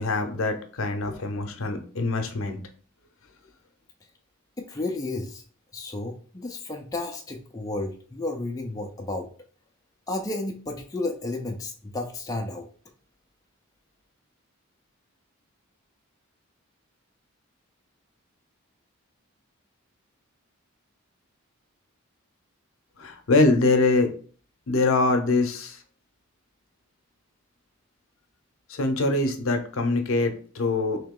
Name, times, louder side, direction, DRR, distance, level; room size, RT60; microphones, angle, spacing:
voice 1, 0.0-2.6 23.0-24.1 24.7-25.8 28.7-31.0, left 3 dB, 70° left, 6 dB, 0.7 m, -23 dB
voice 2, 4.6-5.4 5.7-9.3 10.1-12.7, left 2 dB, 15° left, 2 dB, 0.4 m, -32 dB
3.0 x 2.8 x 3.6 m, 0.43 s
head